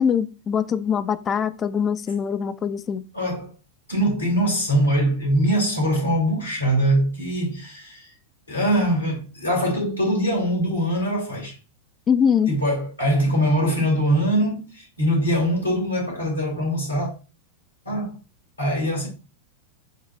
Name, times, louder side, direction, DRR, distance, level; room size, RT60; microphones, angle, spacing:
voice 1, 0.0-3.0 12.1-12.5, left 7 dB, 25° left, 0.3 m, -22 dB
voice 2, 3.1-3.5 3.9-8.1 8.5-11.5 12.5-17.1 17.9-18.2 18.6-19.1, equal, 80° left, 2.0 m, -22 dB
6.5 x 2.4 x 3.2 m
figure-of-eight pair, 90°, 0 cm